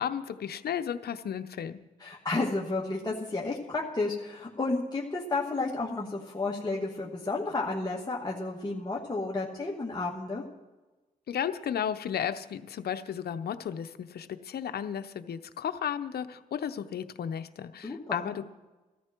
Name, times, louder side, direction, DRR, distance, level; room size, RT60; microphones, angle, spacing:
voice 1, 0.0-1.8 11.3-18.4, left 8 dB, 80° left, 10 dB, 0.8 m, -34 dB
voice 2, 2.0-10.4 17.8-18.3, left 3 dB, 25° left, -4 dB, 2.3 m, -32 dB
16.5 x 13.5 x 4.6 m, 1.1 s
cardioid pair, 60°, 16 cm